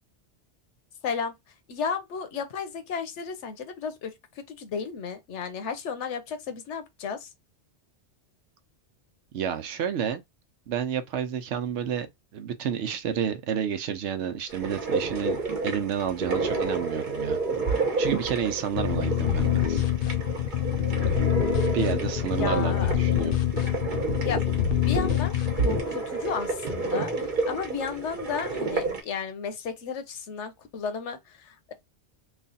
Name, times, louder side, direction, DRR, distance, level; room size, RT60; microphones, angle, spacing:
voice 1, 1.0-1.3 1.7-7.3 22.2-23.0 24.2-24.4 24.8-25.3 25.6-31.7, left 6 dB, 85° left, 1.1 m, -33 dB
voice 2, 9.3-10.2 10.7-12.1 12.3-17.4 18.0-19.8 21.7-23.4, right 8 dB, 85° right, 0.9 m, -30 dB
sound 1, 14.5-29.0, right 3 dB, 45° right, 1.0 m, -30 dB
sound 2, 18.8-25.8, left 11 dB, 60° left, 0.6 m, -26 dB
3.2 x 2.4 x 3.9 m
omnidirectional pair, 1.2 m